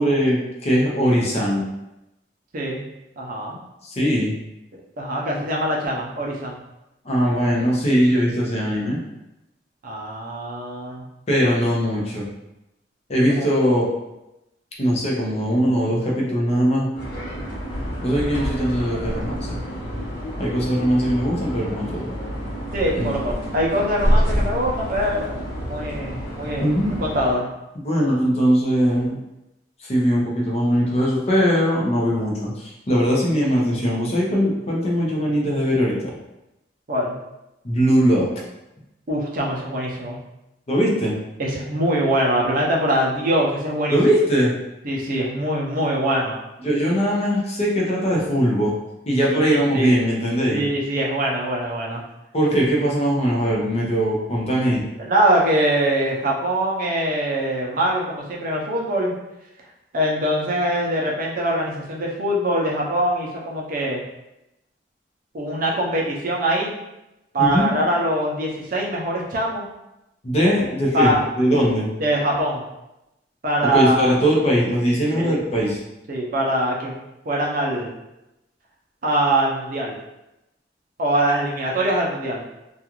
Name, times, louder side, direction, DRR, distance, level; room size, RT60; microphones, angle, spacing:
voice 1, 0.0-1.7 3.8-4.3 7.0-9.0 11.3-12.3 13.1-13.9 14.8-16.9 18.0-19.6 20.4-22.1 22.9-23.1 26.6-27.0 27.8-29.2 29.8-36.1 37.6-38.3 40.7-41.1 43.9-44.5 46.6-48.7 49.1-50.6 52.3-54.8 67.4-67.7 70.2-71.9 73.6-75.8, equal, 35° left, -4 dB, 0.6 m, -20 dB
voice 2, 2.5-2.9 3.2-3.6 5.0-6.6 9.8-11.0 13.4-13.5 22.7-25.4 25.7-26.7 27.0-27.5 36.9-37.2 39.1-40.2 41.4-44.0 44.8-46.4 49.3-49.9 50.5-52.0 55.0-59.1 59.9-64.0 65.3-66.7 67.3-69.7 70.9-71.2 72.0-72.6 73.4-74.1 75.1-75.4 76.1-76.9 77.3-77.9 79.0-80.0 81.0-82.4, right 1 dB, 50° right, -2 dB, 0.6 m, -23 dB
sound 1, 16.9-27.3, equal, 80° left, 1.1 m, -27 dB
2.4 x 2.3 x 2.9 m, 0.91 s
head